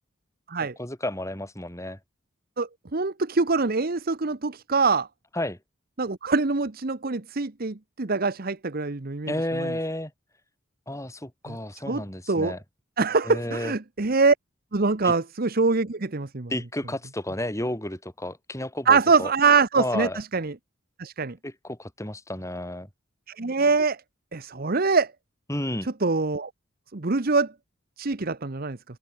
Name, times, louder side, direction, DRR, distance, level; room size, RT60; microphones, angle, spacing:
voice 1, 0.6-2.0 5.3-5.6 9.3-10.1 10.9-12.6 13.2-13.7 15.0-15.1 16.5-19.3 19.7-20.2 21.4-22.9 25.5-25.9, left 1 dB, 15° left, 7.3 m, -32 dB
voice 2, 2.6-5.1 6.0-9.7 11.5-11.6 11.9-12.0 12.3-12.5 13.0-14.3 14.7-16.5 18.9-20.5 21.0-21.4 23.4-24.0 24.3-25.1 26.0-26.5 26.9-27.5 28.0-28.8, right 4 dB, 50° right, 1.0 m, -24 dB
open air
head